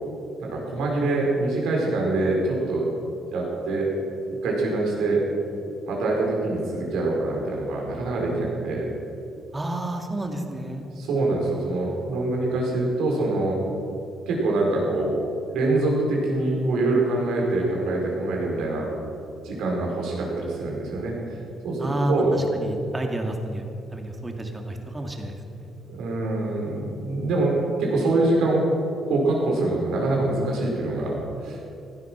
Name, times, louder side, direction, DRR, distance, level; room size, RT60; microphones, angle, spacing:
voice 1, 0.4-2.8 3.3-3.9 4.4-5.2 5.9-8.9 10.9-13.6 14.3-15.2 15.5-18.9 19.4-21.2 21.6-22.5 25.9-28.7 29.1-31.2 31.4-31.6, right 2 dB, 85° right, -2 dB, 4.7 m, -24 dB
voice 2, 9.5-10.9 21.8-25.4 25.6-25.7, right 1 dB, 20° right, 3 dB, 2.4 m, -30 dB
16.5 x 12.0 x 6.2 m, 2.7 s
cardioid pair, 90°, 0 cm